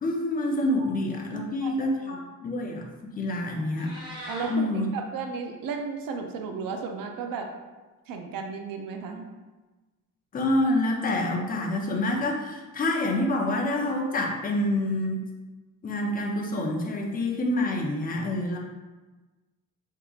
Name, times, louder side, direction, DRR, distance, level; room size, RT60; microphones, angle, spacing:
voice 1, 0.0-2.8 3.2-3.9 4.5-4.9 10.3-15.2 15.8-18.6, left 1 dB, 25° left, 1 dB, 0.4 m, -27 dB
voice 2, 1.3-1.7 2.0-2.2 4.3-7.5 8.1-9.2, right 5 dB, 85° right, 4 dB, 0.5 m, -34 dB
Meow, 3.6-4.5, equal, 15° right, 1.0 m, -40 dB
3.5 x 2.8 x 2.3 m, 1.2 s
cardioid pair, 140°, 33 cm